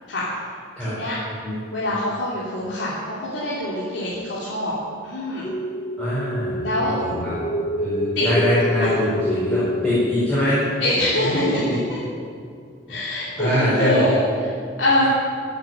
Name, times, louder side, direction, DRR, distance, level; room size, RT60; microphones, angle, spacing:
voice 1, 0.8-1.1 1.7-4.7 5.0-5.5 6.6-6.9 8.1-8.3 8.8-8.9 10.8-11.5 11.9-12.0 12.9-14.2 14.8-15.1, left 1 dB, 75° left, -9 dB, 3.2 m, -24 dB
sound 1, 5.4-11.9, left 1 dB, 35° left, 1.1 m, -27 dB
voice 2, 6.0-6.7 7.0-7.5 7.8-10.6 11.2-11.8 13.4-14.2, left 1 dB, 5° left, -12 dB, 5.1 m, -23 dB
15.5 x 8.5 x 9.4 m, 2.3 s
head